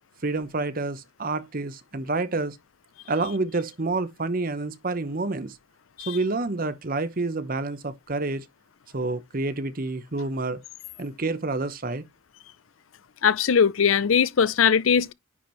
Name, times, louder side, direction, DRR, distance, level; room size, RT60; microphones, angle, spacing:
voice 1, 0.2-2.6 3.1-5.6 6.1-8.5 8.9-10.6 11.0-12.0, right 3 dB, 45° right, 0.9 m, -28 dB
voice 2, 13.2-15.1, left 7 dB, 80° left, 0.5 m, -20 dB
9.9 x 4.4 x 3.1 m
head